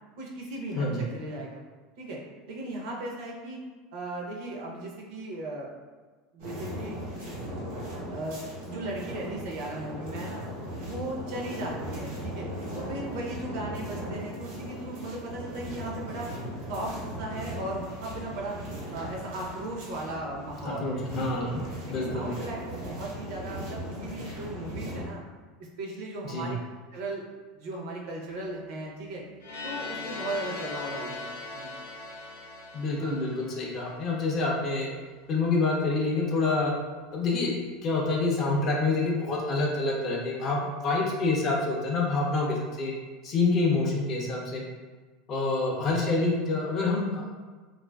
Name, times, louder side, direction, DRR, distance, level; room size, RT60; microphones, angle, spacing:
voice 1, 0.2-1.6 2.0-2.2 2.5-3.6 3.9-5.7 6.3-7.0 8.0-8.4 8.7-10.4 10.8-12.5 12.7-16.3 16.7-18.6 18.9-21.5 21.9-25.2 25.8-26.6 26.9-27.2 27.5-29.2 29.6-31.7, right 1 dB, 60° right, -2 dB, 0.5 m, -37 dB
sound 1, 6.4-25.1, equal, 75° right, 1.0 m, -38 dB
voice 2, 20.6-22.3 26.2-26.5 32.7-34.9 35.3-36.7 37.1-37.5 37.8-42.9 43.2-44.6 45.3-47.3, left 3 dB, 30° left, -1 dB, 0.4 m, -27 dB
sound 2, 29.4-34.2, left 3 dB, 75° left, 0.7 m, -39 dB
2.4 x 2.3 x 2.2 m, 1.3 s
supercardioid pair, 165°, 0 cm